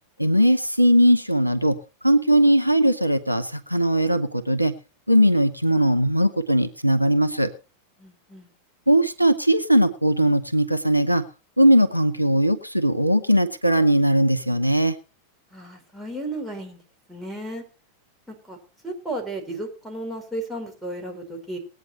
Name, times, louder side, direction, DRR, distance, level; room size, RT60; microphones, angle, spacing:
voice 1, 0.2-1.8 2.0-4.7 5.1-7.5 8.9-11.2 11.6-14.9, right 1 dB, 90° right, 10 dB, 0.9 m, -19 dB
voice 2, 8.0-8.5 15.5-16.8 17.1-17.6 18.3-18.6 18.8-21.6, right 1 dB, 5° right, 1 dB, 4.7 m, -34 dB
19.5 x 9.3 x 4.3 m, 0.33 s
figure-of-eight pair, 90°, 0 cm